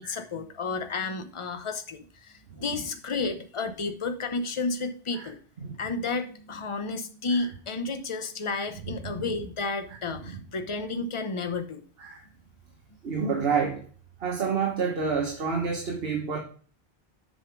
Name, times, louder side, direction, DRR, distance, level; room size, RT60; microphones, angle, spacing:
voice 1, 0.0-5.4 5.8-11.8, left 3 dB, 30° left, 7 dB, 0.8 m, -32 dB
voice 2, 9.0-9.3 10.2-10.4 12.0-12.2 13.0-13.8 14.2-16.4, right 5 dB, 65° right, 1 dB, 1.4 m, -29 dB
7.9 x 5.6 x 4.6 m, 0.42 s
omnidirectional pair, 1.1 m